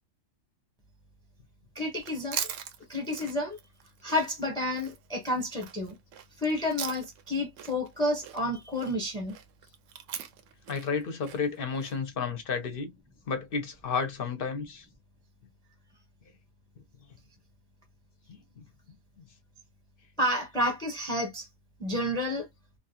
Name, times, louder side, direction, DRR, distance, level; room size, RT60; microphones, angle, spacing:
voice 1, 1.7-2.5 2.9-3.6 4.0-6.0 6.4-9.3 20.2-21.5 21.8-22.5, left 1 dB, 5° left, 0.7 m, -30 dB
Chewing mastication, 2.0-7.3 7.6-12.0, right 8 dB, 75° right, 1.0 m, -41 dB
voice 2, 10.7-12.9 13.3-14.9 18.3-18.6, left 5 dB, 55° left, 0.7 m, -32 dB
2.9 x 2.3 x 2.7 m
omnidirectional pair, 1.4 m